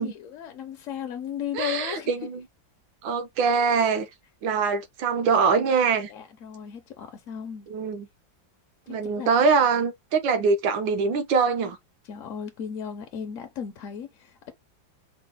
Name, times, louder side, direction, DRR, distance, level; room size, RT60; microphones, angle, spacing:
voice 1, 0.0-2.1 6.1-7.7 8.9-9.3 12.0-14.5, left 8 dB, 65° left, 0.8 m, -36 dB
voice 2, 1.5-2.4 3.0-4.1 4.4-6.1 7.7-8.1 8.9-11.8, right 5 dB, 85° right, 1.6 m, -23 dB
4.7 x 2.0 x 3.8 m
omnidirectional pair, 2.0 m